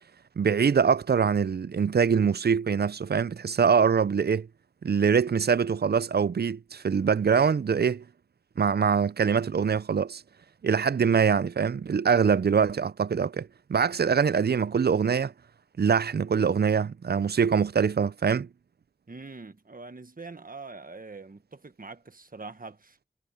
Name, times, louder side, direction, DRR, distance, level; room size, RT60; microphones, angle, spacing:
voice 1, 0.4-4.5 4.8-8.0 8.6-10.2 10.6-15.3 15.8-18.5, right 6 dB, 70° right, 0.5 m, -24 dB
voice 2, 19.1-23.0, right 3 dB, 55° right, 1.5 m, -43 dB
wide cardioid pair, 40°, 17 cm